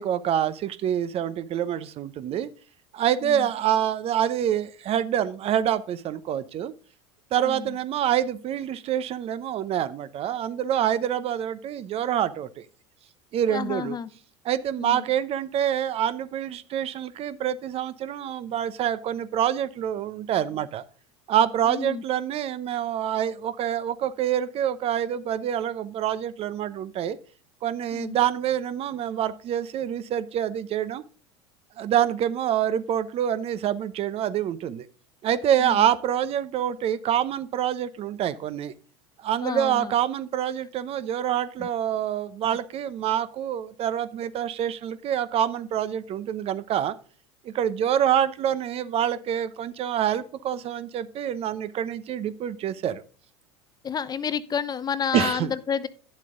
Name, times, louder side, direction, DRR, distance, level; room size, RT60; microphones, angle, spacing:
voice 1, 0.0-2.5 2.9-6.7 7.3-12.6 13.3-14.0 14.4-20.8 21.3-27.2 27.6-31.0 31.8-34.9 35.2-38.7 39.2-46.9 47.4-53.0 55.1-55.5, right 10 dB, 45° right, 14 dB, 0.8 m, -26 dB
voice 2, 7.4-7.8 13.5-14.1 14.8-15.1 21.7-22.0 27.9-28.2 35.6-35.9 39.4-39.9 41.6-41.7 53.8-55.9, left 7 dB, 25° left, 16 dB, 0.7 m, -30 dB
10.0 x 7.4 x 3.8 m, 0.39 s
hypercardioid pair, 85°, 15 cm